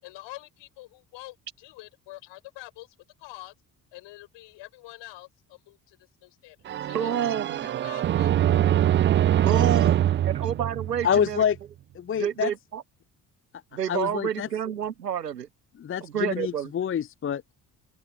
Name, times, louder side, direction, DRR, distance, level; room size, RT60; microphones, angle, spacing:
voice 1, 0.0-3.5 3.9-7.3 7.6-8.4, left 18 dB, 65° left, 6.7 m, -46 dB
sound 1, 6.7-11.4, right 11 dB, 25° right, 0.4 m, -23 dB
voice 2, 6.9-7.7 9.4-11.4 12.1-12.8 13.7-15.5 16.0-16.7, right 9 dB, 90° right, 0.9 m, -29 dB
voice 3, 11.0-11.6 11.9-12.5 13.9-14.5 15.8-17.5, left 8 dB, 25° left, 0.7 m, -26 dB
open air
figure-of-eight pair, 45°, 47 cm